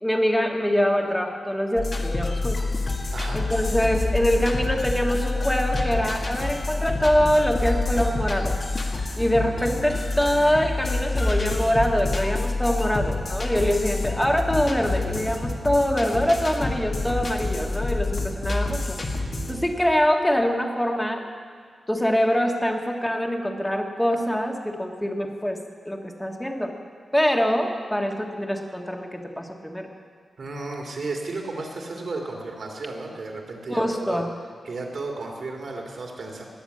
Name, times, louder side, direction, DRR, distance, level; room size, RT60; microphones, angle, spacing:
voice 1, 0.0-2.7 3.3-8.6 9.2-19.0 19.5-21.3 21.9-26.7 27.1-29.9 33.7-34.3, equal, 5° left, 2 dB, 1.6 m, -24 dB
sound 1, 1.8-19.6, left 2 dB, 45° left, 1.8 m, -27 dB
voice 2, 3.1-3.4 30.4-34.2 34.6-36.4, right 3 dB, 65° right, 1 dB, 2.7 m, -33 dB
20.5 x 7.1 x 8.5 m, 2.1 s
wide cardioid pair, 100°, 0 cm